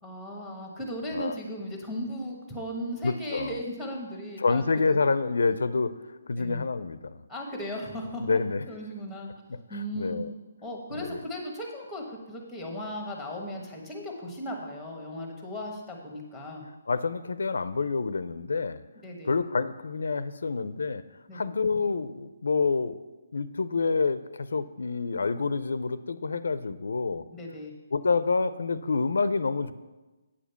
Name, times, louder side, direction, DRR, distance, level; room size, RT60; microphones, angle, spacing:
voice 1, 0.0-5.0 6.4-6.6 7.3-8.4 8.7-9.3 9.7-10.2 10.6-16.7 19.0-19.3 21.3-21.4 27.3-27.7, equal, ahead, 1 dB, 1.1 m, -37 dB
voice 2, 3.0-3.5 4.4-5.9 6.3-7.2 8.2-8.6 9.9-10.3 10.9-11.2 16.9-18.8 19.2-21.0 21.3-23.0 23.3-27.2 27.9-29.7, left 4 dB, 80° left, 14 dB, 0.5 m, -27 dB
8.4 x 5.1 x 6.8 m, 1.1 s
hypercardioid pair, 175°, 0 cm